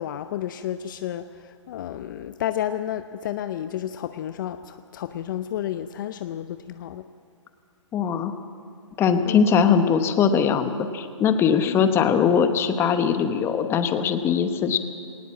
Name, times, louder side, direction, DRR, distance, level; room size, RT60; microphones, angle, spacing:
voice 1, 0.0-7.1 9.3-9.4 11.6-11.8, left 11 dB, 40° left, 11 dB, 0.6 m, -31 dB
voice 2, 7.9-8.3 9.0-14.8, left 7 dB, 15° left, 9 dB, 1.0 m, -21 dB
19.5 x 19.0 x 7.5 m, 2.5 s
hypercardioid pair, 145°, 16 cm